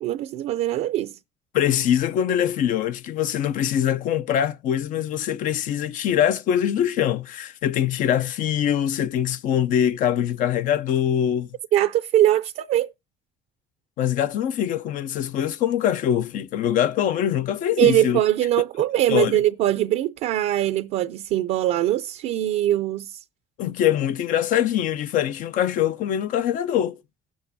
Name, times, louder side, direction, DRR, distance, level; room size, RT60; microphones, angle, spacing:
voice 1, 0.0-1.2 11.7-12.9 17.8-23.2, right 13 dB, 75° right, 0.5 m, -22 dB
voice 2, 1.5-11.5 14.0-18.2 19.1-19.4 23.6-27.0, left 10 dB, 70° left, 0.6 m, -23 dB
17.5 x 6.3 x 2.7 m
cardioid pair, 95°, 14 cm